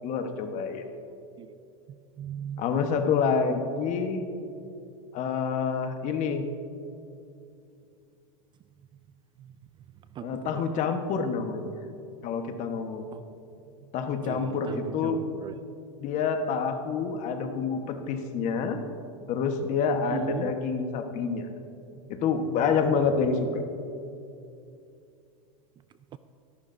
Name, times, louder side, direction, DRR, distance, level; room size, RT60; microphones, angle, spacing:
voice 1, 0.0-0.8 2.6-4.2 5.1-6.4 10.2-11.7 12.2-13.1 13.9-15.2 16.0-18.8 19.3-21.5 22.1-23.7, left 5 dB, 45° left, 5 dB, 1.3 m, -27 dB
voice 2, 1.9-2.6 3.4-3.5 9.4-9.5 10.2-10.6 13.1-13.2 14.2-15.6 20.1-20.5 21.9-22.0 26.1-26.2, right 10 dB, 25° right, 13 dB, 0.4 m, -38 dB
22.5 x 11.0 x 2.7 m, 2.6 s
hypercardioid pair, 120°, 18 cm